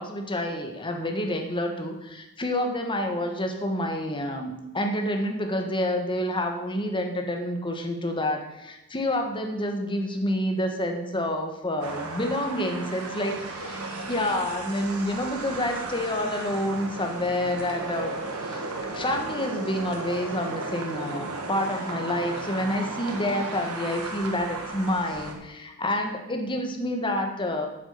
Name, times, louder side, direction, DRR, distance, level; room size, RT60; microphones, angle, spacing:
voice 1, 0.0-13.8 14.1-18.1 18.4-27.7, left 1 dB, 20° left, 4 dB, 1.5 m, -28 dB
sound 1, 11.8-25.3, right 2 dB, 80° right, 1.7 m, -35 dB
9.0 x 7.3 x 7.0 m, 0.98 s
head